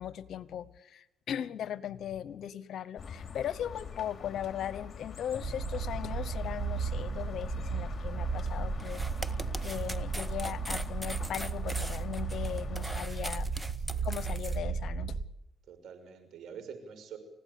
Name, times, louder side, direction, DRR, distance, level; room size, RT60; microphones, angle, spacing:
voice 1, 0.0-9.0 9.6-13.5 14.0-15.2, left 10 dB, 70° left, 16 dB, 1.1 m, -38 dB
sound 1, 3.0-13.1, left 6 dB, 40° left, 3.6 m, -44 dB
sound 2, 5.4-15.3, right 5 dB, 45° right, 2.3 m, -35 dB
sound 3, 8.8-14.6, right 1 dB, 10° right, 1.7 m, -41 dB
voice 2, 15.7-17.2, right 7 dB, 75° right, 9 dB, 6.3 m, -46 dB
29.5 x 16.5 x 8.6 m, 0.91 s
cardioid pair, 90°, 0 cm